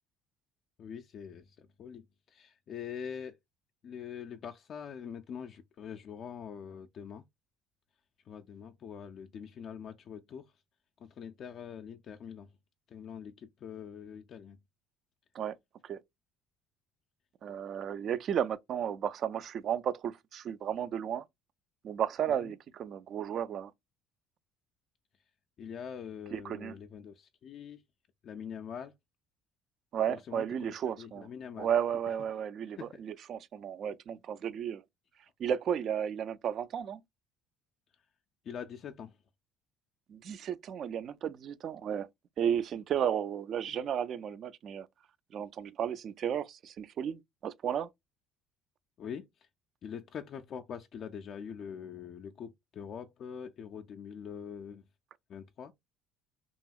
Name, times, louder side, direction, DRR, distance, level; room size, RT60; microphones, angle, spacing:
voice 1, 0.8-3.4 3.8-7.2 8.3-10.5 11.0-12.5 12.9-14.6 22.4-22.5 25.6-27.8 28.2-28.9 30.1-31.7 32.8-33.0 38.4-39.2 43.7-43.8 49.0-49.5 49.8-54.8 55.3-55.7, left 7 dB, 50° left, 0.3 m, -44 dB
voice 2, 17.4-21.2 21.8-23.7 26.3-26.7 29.9-31.3 31.6-34.8 35.4-37.0 40.1-42.1 42.4-44.9 45.3-47.9, right 9 dB, 55° right, 0.4 m, -33 dB
2.8 x 2.7 x 2.3 m
supercardioid pair, 90°, 0 cm